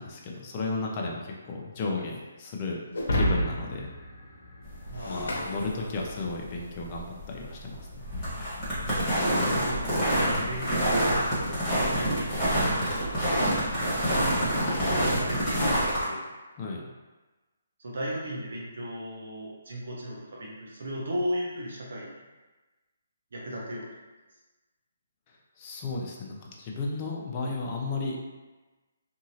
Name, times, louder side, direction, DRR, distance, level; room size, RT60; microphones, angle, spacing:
voice 1, 0.0-3.9 5.1-8.0 16.6-16.8 25.6-28.2, left 3 dB, 30° left, -1 dB, 0.5 m, -34 dB
Shatter, 2.9-6.4, equal, 70° left, 0.8 m, -31 dB
sound 1, 4.6-16.0, equal, 10° left, 1.3 m, -27 dB
voice 2, 4.9-5.2 9.4-12.8 13.8-14.0 14.3-16.3 17.8-22.1 23.3-23.9, equal, 70° right, -4 dB, 0.8 m, -36 dB
2.8 x 2.7 x 2.7 m, 1.2 s
hypercardioid pair, 155°, 0 cm